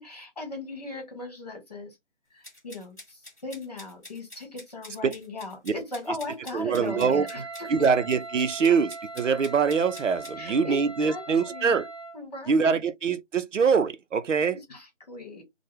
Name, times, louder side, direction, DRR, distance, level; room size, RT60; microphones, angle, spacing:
voice 1, 0.0-1.9 2.3-7.9 8.4-8.8 10.4-11.9 12.1-12.8 14.4-15.4, left 2 dB, 35° left, 1.4 m, -39 dB
sound 1, 2.4-10.3, left 1 dB, 15° left, 1.0 m, -48 dB
voice 2, 6.5-7.2 7.7-11.9 12.5-14.6, right 5 dB, 85° right, 0.6 m, -24 dB
Wind instrument woodwind instrument, 6.9-12.2, right 3 dB, 20° right, 1.2 m, -40 dB
3.0 x 2.2 x 3.2 m
figure-of-eight pair, 175°, 36 cm